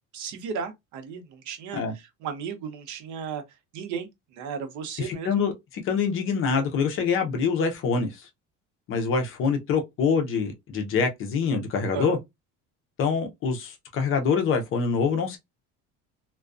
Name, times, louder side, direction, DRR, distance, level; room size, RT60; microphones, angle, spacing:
voice 1, 0.1-3.4 3.7-5.4 11.9-12.2, right 6 dB, 70° right, 0.7 m, -35 dB
voice 2, 5.0-8.3 8.9-12.2 13.0-15.4, left 5 dB, 40° left, 0.6 m, -25 dB
2.4 x 2.2 x 2.4 m
cardioid pair, 160°, 31 cm